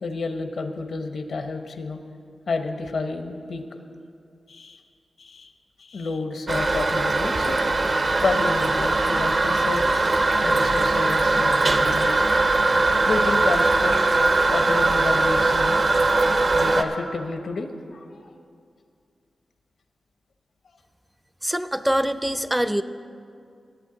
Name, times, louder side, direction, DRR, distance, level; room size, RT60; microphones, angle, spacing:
voice 1, 0.0-2.0 2.5-3.6 4.5-4.8 5.2-5.5 5.8-7.6 8.2-10.0 10.4-12.4 13.1-14.0 14.5-16.0 16.5-18.4, left 3 dB, 70° left, 7 dB, 0.8 m, -30 dB
Toilet flush, 6.5-16.8, right 2 dB, 55° right, 0.7 m, -20 dB
voice 2, 21.4-22.8, equal, 10° right, 12 dB, 0.4 m, -24 dB
19.0 x 8.2 x 3.8 m, 2.4 s
cardioid pair, 60°, 0 cm